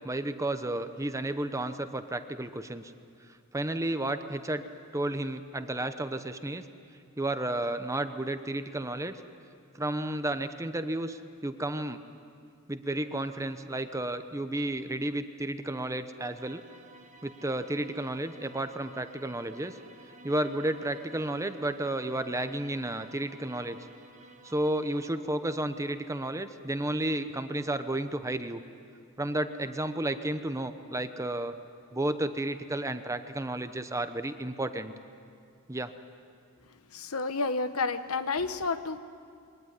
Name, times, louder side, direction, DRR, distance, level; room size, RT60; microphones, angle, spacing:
voice 1, 0.0-2.9 3.5-4.6 4.9-6.6 7.2-9.2 9.7-12.0 12.7-16.6 17.2-19.8 20.2-23.8 24.4-28.6 29.2-31.5 31.9-34.9 35.7-35.9, right 1 dB, 15° right, 9 dB, 0.8 m, -32 dB
sound 1, 16.4-25.1, right 2 dB, 35° right, 1.4 m, -54 dB
voice 2, 36.9-39.0, left 3 dB, 85° left, 11 dB, 1.1 m, -30 dB
22.5 x 18.5 x 9.5 m, 2.2 s
head